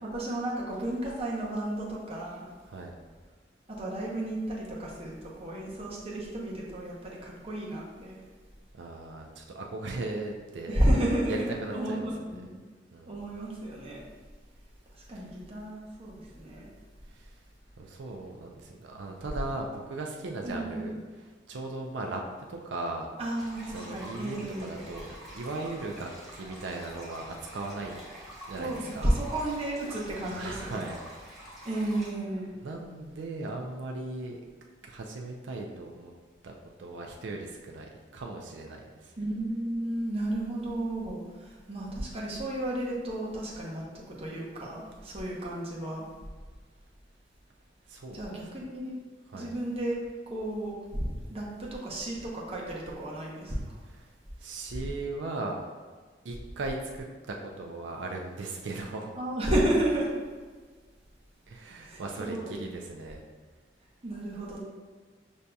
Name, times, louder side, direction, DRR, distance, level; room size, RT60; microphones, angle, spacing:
voice 1, 0.0-2.5 3.7-8.2 10.7-12.5 13.1-14.0 15.1-16.7 20.4-20.9 23.2-24.7 28.6-30.9 31.6-32.5 39.2-46.0 48.1-49.0 49.3-50.0 50.3-53.8 59.1-60.1 61.8-62.6 64.0-64.6, right 1 dB, 35° right, -4 dB, 0.8 m, -32 dB
voice 2, 8.7-10.9 11.3-12.1 12.9-13.2 15.1-15.3 17.1-17.4 17.8-21.0 21.5-23.1 23.7-28.0 28.5-29.1 30.3-31.1 31.6-31.9 32.6-34.4 34.8-36.1 36.4-39.1 47.9-48.3 49.3-49.5 54.0-54.1 54.4-55.6 56.2-59.1 61.5-63.2, right 2 dB, 85° right, 1 dB, 0.4 m, -38 dB
sound 1, 23.3-32.1, equal, ahead, 1.2 m, -47 dB
6.2 x 2.7 x 2.3 m, 1.5 s
head